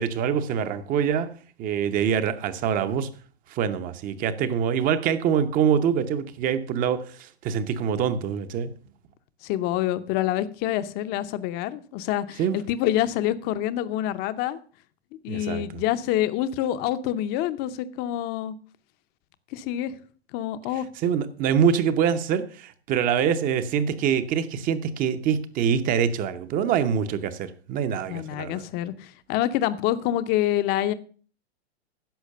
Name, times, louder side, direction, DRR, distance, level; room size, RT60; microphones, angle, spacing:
voice 1, 0.0-1.3 1.6-3.1 3.5-8.7 12.4-12.6 15.3-15.8 21.0-28.6, right 8 dB, 25° right, 0.8 m, -25 dB
voice 2, 9.4-14.6 15.2-18.5 19.5-19.9 20.3-20.9 28.1-30.9, left 12 dB, 30° left, 0.7 m, -26 dB
10.5 x 6.4 x 6.6 m
hypercardioid pair, 135°, 32 cm